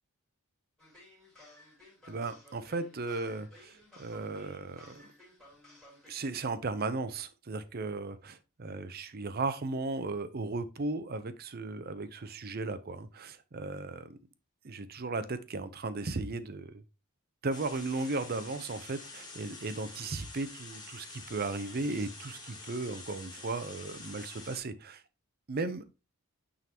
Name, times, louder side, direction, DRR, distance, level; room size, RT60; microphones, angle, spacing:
sound 1, 0.8-6.1, left 1 dB, 5° left, 2.8 m, -57 dB
voice 1, 2.1-5.1 6.1-14.2 14.6-16.8 17.4-25.0 25.5-25.8, right 3 dB, 45° right, 0.6 m, -36 dB
sound 2, 17.5-24.6, left 3 dB, 20° left, 1.5 m, -47 dB
9.1 x 3.8 x 2.8 m
head